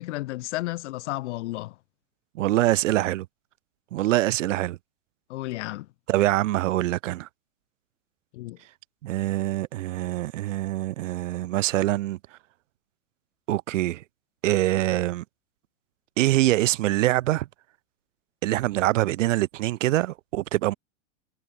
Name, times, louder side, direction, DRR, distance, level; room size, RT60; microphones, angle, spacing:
voice 1, 0.0-1.7 5.3-5.9 8.3-8.6, left 18 dB, 65° left, 1.1 m, -32 dB
voice 2, 2.3-3.3 3.9-4.8 6.1-7.3 9.0-12.2 13.5-14.0 14.4-15.2 16.2-17.5 18.4-20.7, right 16 dB, 80° right, 0.7 m, -24 dB
hypercardioid pair, 125°, 37 cm